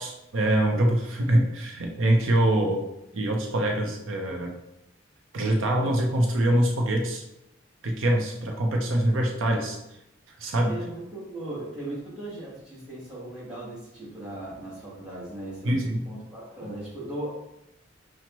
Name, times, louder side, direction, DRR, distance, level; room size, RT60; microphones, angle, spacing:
voice 1, 0.0-2.8 3.1-4.5 5.3-7.2 7.8-9.8 10.4-10.8 15.6-16.0, right 1 dB, 90° right, 1 dB, 0.6 m, -24 dB
voice 2, 10.7-17.3, right 1 dB, 5° right, -7 dB, 1.3 m, -38 dB
5.9 x 2.1 x 2.9 m, 0.87 s
head